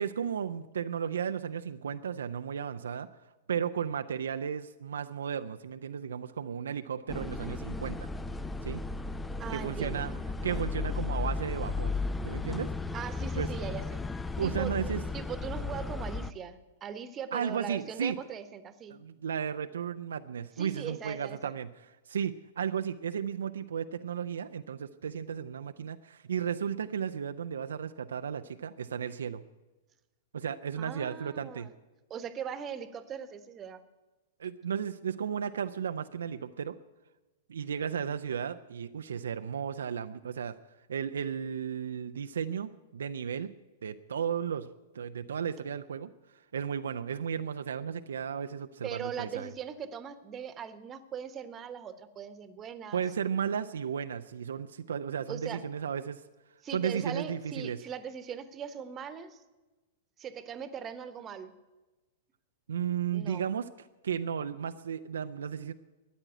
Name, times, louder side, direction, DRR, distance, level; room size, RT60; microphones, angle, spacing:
voice 1, 0.0-3.1 3.5-8.1 8.6-8.8 9.5-11.9 12.2-12.7 13.4-13.5 14.4-15.0 17.3-18.2 18.9-21.7 22.1-29.4 30.3-31.7 34.4-36.8 37.5-40.5 40.9-43.5 43.8-44.7 44.9-46.1 46.5-49.5 52.9-56.2 56.7-57.8 62.7-63.7 64.0-65.7, right 7 dB, 70° right, 9 dB, 0.5 m, -34 dB
sound 1, 7.1-16.3, left 3 dB, 10° left, 0.5 m, -35 dB
voice 2, 9.4-10.0 12.9-14.0 14.4-19.0 20.6-21.4 30.8-31.7 32.1-33.8 48.8-53.0 55.3-55.6 56.6-59.4 60.2-61.5 63.1-63.4, right 7 dB, 25° right, 12 dB, 1.1 m, -40 dB
13.5 x 9.7 x 9.2 m, 1.1 s
figure-of-eight pair, 105°, 0 cm